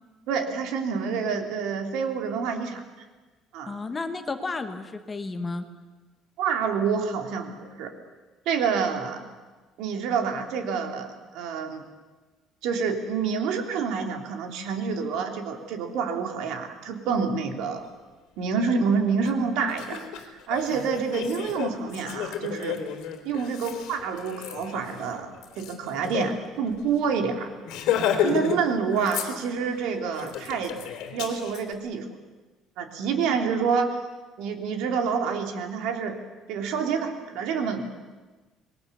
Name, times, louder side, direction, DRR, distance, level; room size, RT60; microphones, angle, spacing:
voice 1, 0.3-2.8 3.5-3.8 6.4-7.9 8.5-9.3 9.8-11.8 12.6-17.9 18.4-22.8 23.2-25.3 25.6-27.5 28.2-30.8 31.1-32.2 32.8-34.0 34.4-36.2 36.5-37.9, right 6 dB, 75° right, 4 dB, 3.3 m, -28 dB
voice 2, 3.7-5.7, left 3 dB, 15° left, 7 dB, 1.3 m, -32 dB
Laughter, 19.2-19.3 19.7-26.3 26.7-26.8 27.1-27.2 27.6-28.6 28.9-29.7 30.1-31.6, left 9 dB, 70° left, 3.4 m, -31 dB
27.0 x 21.5 x 6.9 m, 1.3 s
cardioid pair, 170°, 0 cm